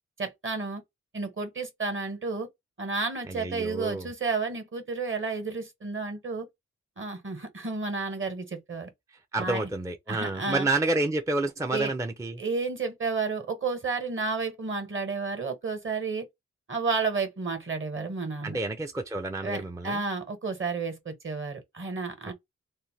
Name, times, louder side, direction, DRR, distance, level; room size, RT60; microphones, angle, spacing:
voice 1, 0.2-0.8 1.1-2.5 2.8-6.5 7.0-8.9 9.4-9.7 10.1-10.7 11.7-11.9 12.4-16.2 16.7-18.6 19.4-22.3, right 4 dB, 45° right, 1.2 m, -31 dB
voice 2, 3.3-4.1 9.1-12.4 18.4-20.0, right 2 dB, 10° right, 0.4 m, -29 dB
2.7 x 2.2 x 3.1 m
cardioid pair, 65°, 29 cm